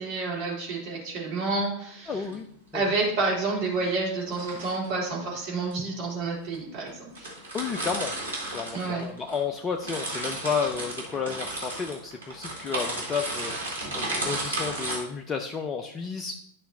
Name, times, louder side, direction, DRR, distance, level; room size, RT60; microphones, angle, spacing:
voice 1, 0.0-2.2 2.7-7.3 8.7-9.0, right 3 dB, 45° right, -5 dB, 3.3 m, -29 dB
voice 2, 2.1-2.5 2.7-2.9 7.5-8.1 8.5-16.3, left 5 dB, 20° left, 5 dB, 0.5 m, -32 dB
sound 1, 2.1-2.3 4.2-4.9 5.7-5.8 6.5-6.6 6.9-7.0 7.1-9.4 9.7-15.0, right 2 dB, 75° right, 2.3 m, -33 dB
11.0 x 5.6 x 2.8 m, 0.67 s
figure-of-eight pair, 90°, 0 cm